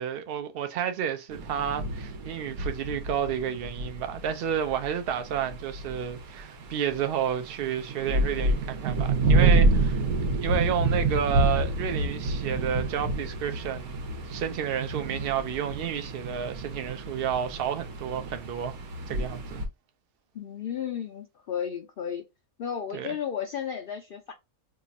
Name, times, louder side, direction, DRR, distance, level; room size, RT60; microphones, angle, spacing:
voice 1, 0.0-10.0 10.4-18.8 19.1-19.6 22.9-23.1, right 9 dB, 65° right, 0.6 m, -31 dB
sound 1, 1.3-19.7, right 2 dB, 85° right, 1.2 m, -28 dB
voice 2, 20.3-22.2 22.6-24.3, left 8 dB, 75° left, 0.5 m, -33 dB
2.9 x 2.4 x 3.9 m
omnidirectional pair, 1.5 m